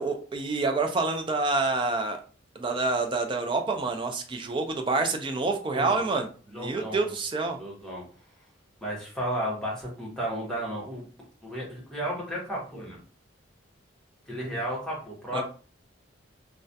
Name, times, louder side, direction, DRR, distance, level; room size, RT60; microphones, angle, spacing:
voice 1, 0.0-2.2 2.6-7.6 15.3-15.4, right 3 dB, 25° right, 4 dB, 0.3 m, -27 dB
voice 2, 5.7-6.0 6.5-7.1 7.6-8.0 8.8-11.0 11.4-13.0 14.3-15.4, equal, 5° left, -4 dB, 0.8 m, -33 dB
2.3 x 2.1 x 2.6 m, 0.39 s
head